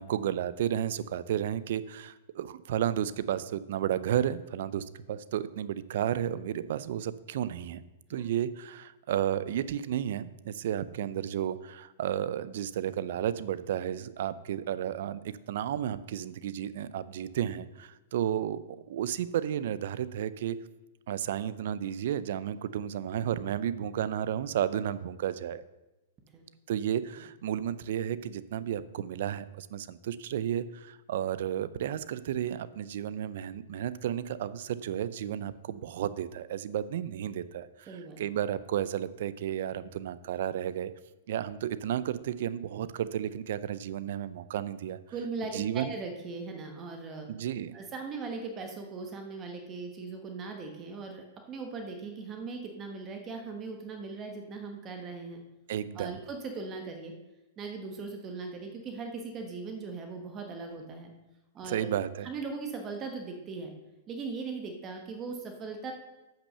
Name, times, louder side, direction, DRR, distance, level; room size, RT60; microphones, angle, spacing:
voice 1, 0.0-7.8 8.1-18.6 18.9-20.6 21.1-25.6 26.7-40.9 41.3-45.0 45.5-45.9 47.3-47.7 55.7-56.2 61.6-62.3, right 10 dB, 60° right, 16 dB, 0.5 m, -32 dB
voice 2, 37.9-38.2 45.1-47.3 47.7-55.4 55.9-57.1 57.6-61.1 61.5-61.9 62.2-63.7 64.1-65.9, right 4 dB, 25° right, 4 dB, 1.2 m, -39 dB
8.5 x 5.9 x 6.7 m, 1.0 s
hypercardioid pair, 150°, 0 cm